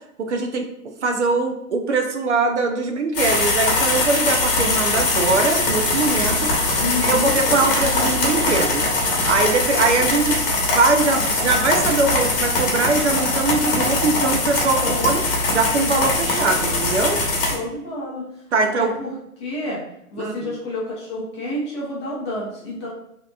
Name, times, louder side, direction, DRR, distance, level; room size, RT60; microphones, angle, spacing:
voice 1, 0.3-0.7 1.0-6.5 7.0-8.9 9.3-15.2 15.5-17.2 18.5-18.9 20.2-20.5, right 3 dB, 50° right, 4 dB, 0.5 m, -21 dB
sound 1, 3.1-17.5, left 2 dB, 35° left, 1.1 m, -21 dB
voice 2, 6.8-7.3 9.8-10.1 14.8-15.1 17.5-18.2 18.6-19.8 20.1-22.9, left 2 dB, 20° left, -5 dB, 0.6 m, -29 dB
4.8 x 2.9 x 2.3 m, 0.79 s
hypercardioid pair, 145°, 45 cm